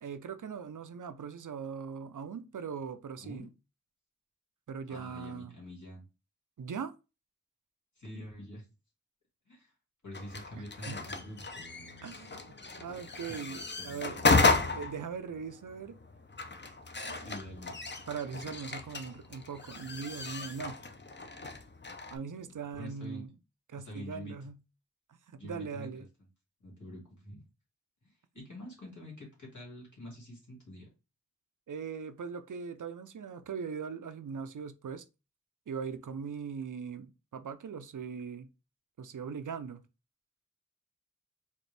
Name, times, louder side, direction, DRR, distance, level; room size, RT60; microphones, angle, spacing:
voice 1, 0.0-3.5 4.7-5.6 6.6-6.9 10.9-11.1 12.0-14.3 14.7-16.0 17.1-17.3 18.1-20.8 22.1-23.4 23.7-24.6 25.1-26.1 31.7-35.0 35.7-38.5 39.0-39.8, right 6 dB, 85° right, 0.5 m, -40 dB
voice 2, 4.9-6.0 8.0-8.7 9.5-9.7 10.0-12.2 13.3-14.0 14.7-14.8 17.2-17.7 22.3-23.2 23.8-24.3 25.4-25.9 26.6-27.4 28.0-30.9, equal, 75° left, 2.0 m, -46 dB
sound 1, 10.1-22.2, left 3 dB, 35° left, 0.5 m, -33 dB
4.3 x 2.5 x 3.2 m
wide cardioid pair, 40°, 30 cm